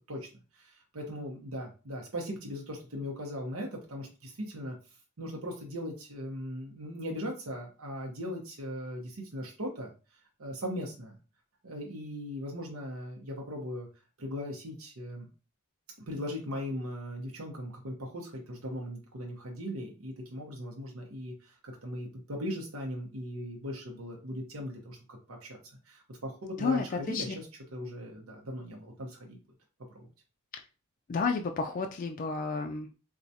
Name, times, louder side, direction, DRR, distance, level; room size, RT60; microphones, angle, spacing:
voice 1, 0.5-4.8 5.2-9.9 10.4-11.1 11.6-13.9 14.2-15.3 16.1-25.6 25.9-27.5 27.7-29.4 29.9-30.1, equal, 90° right, 0 dB, 0.8 m, -39 dB
voice 2, 26.6-27.4 31.1-33.0, left 4 dB, 40° left, 4 dB, 0.3 m, -31 dB
4.4 x 2.3 x 2.7 m, 0.34 s
head